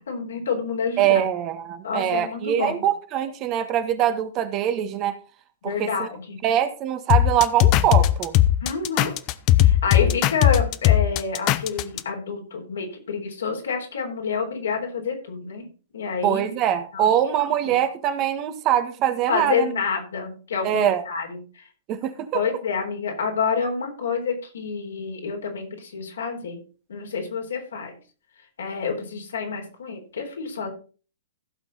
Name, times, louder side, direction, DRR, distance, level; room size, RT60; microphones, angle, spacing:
voice 1, 0.0-1.3 1.8-2.8 5.6-6.4 8.6-9.1 9.6-15.7 15.9-16.5 16.9-17.1 17.7-17.8 19.3-21.7 22.3-26.6 26.9-28.0 28.6-30.7, left 5 dB, 75° left, 3.8 m, -28 dB
voice 2, 1.0-5.2 5.6-6.1 6.4-8.4 10.0-10.1 16.2-19.7 20.6-21.0 21.9-22.4, right 10 dB, 35° right, 1.5 m, -23 dB
sound 1, 7.1-12.0, left 13 dB, 40° left, 0.8 m, -18 dB
15.5 x 6.2 x 4.1 m
hypercardioid pair, 115°, 0 cm